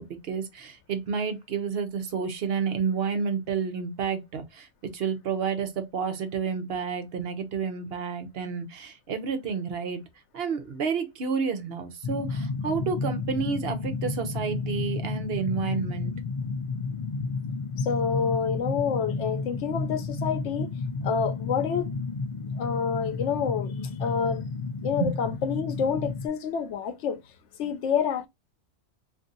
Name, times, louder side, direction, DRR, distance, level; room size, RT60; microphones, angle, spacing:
voice 1, 0.0-10.0 10.3-16.2 25.0-25.2, right 6 dB, 65° right, 0.9 m, -30 dB
sound 1, 12.0-26.3, left 4 dB, 55° left, 0.4 m, -32 dB
voice 2, 17.8-20.7 21.0-21.9 22.6-24.4 24.8-27.2 27.6-28.3, left 6 dB, 85° left, 1.0 m, -28 dB
2.6 x 2.6 x 3.7 m
omnidirectional pair, 1.2 m